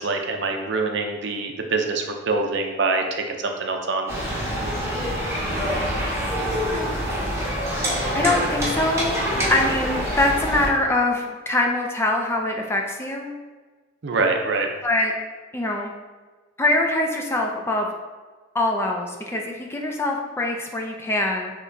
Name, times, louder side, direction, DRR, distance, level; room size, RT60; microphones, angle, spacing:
voice 1, 0.0-4.1 14.0-14.7, right 3 dB, 65° right, 3 dB, 0.5 m, -25 dB
sound 1, 4.1-10.7, equal, 15° right, 1.2 m, -25 dB
voice 2, 6.7-7.0 8.1-9.2 9.5-13.3 14.8-15.1 15.5-15.9 16.6-17.9 18.5-21.5, left 2 dB, 15° left, 1 dB, 0.4 m, -23 dB
6.3 x 2.9 x 2.7 m, 1.3 s
head